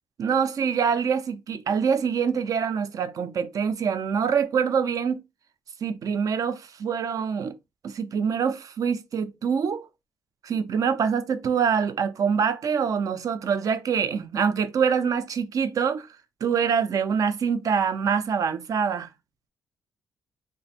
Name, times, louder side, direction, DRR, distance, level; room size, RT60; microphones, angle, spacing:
voice 1, 0.2-5.2 5.8-7.5 7.8-9.9 10.4-16.1 16.4-19.1, right 6 dB, 50° right, 0.5 m, -25 dB
3.2 x 2.1 x 4.1 m
cardioid pair, 125°, 7 cm